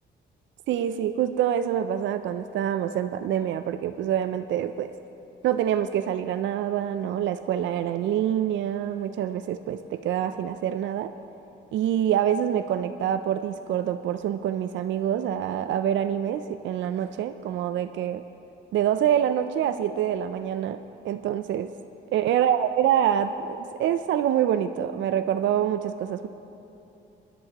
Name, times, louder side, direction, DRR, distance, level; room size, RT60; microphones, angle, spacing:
voice 1, 0.7-4.9 5.4-11.1 11.7-18.2 18.7-20.8 21.0-21.7 22.1-26.3, right 10 dB, 70° right, 10 dB, 0.4 m, -26 dB
21.0 x 11.0 x 2.9 m, 2.9 s
cardioid pair, 90°, 20 cm